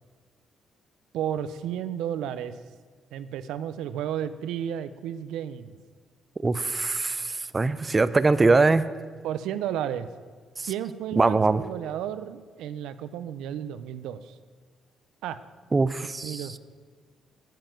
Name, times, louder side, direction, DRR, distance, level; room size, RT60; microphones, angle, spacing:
voice 1, 1.1-2.5 3.1-5.8 9.2-10.1 10.7-14.3 15.2-15.4 16.2-16.6, right 10 dB, 90° right, 13 dB, 0.5 m, -32 dB
voice 2, 6.4-8.8 10.6-10.7 11.2-11.6 15.7-16.5, right 3 dB, 25° right, 14 dB, 0.5 m, -22 dB
9.3 x 9.2 x 7.7 m, 1.5 s
cardioid pair, 90°, 0 cm